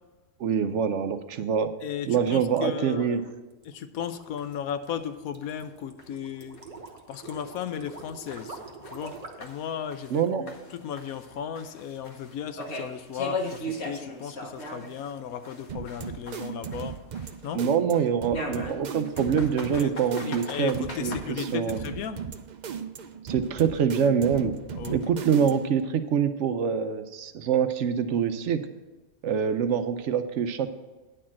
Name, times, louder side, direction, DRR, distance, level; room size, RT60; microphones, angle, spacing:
voice 1, 0.4-1.7 2.1-3.2 10.1-10.4 17.5-21.8 23.2-24.5 24.9-28.6 29.2-30.7, right 7 dB, 65° right, 10 dB, 0.8 m, -25 dB
voice 2, 1.8-3.2 3.7-6.6 7.1-8.6 8.9-10.5 10.8-16.9 17.4-17.6 19.7-19.9 20.2-22.2 24.8-24.9, left 8 dB, 80° left, 10 dB, 1.1 m, -35 dB
sound 1, 3.5-9.6, right 3 dB, 30° right, 1.0 m, -44 dB
sound 2, 4.4-4.5 4.9-5.0 5.4-5.5 6.0-6.1 6.6-6.7 7.1-7.2 7.7-10.2 10.5-15.1 15.4-17.5 18.3-21.2, left 1 dB, 50° left, 1.3 m, -38 dB
sound 3, 15.7-25.8, right 7 dB, 90° right, 0.4 m, -37 dB
10.0 x 4.4 x 7.3 m, 1.2 s
omnidirectional pair, 1.5 m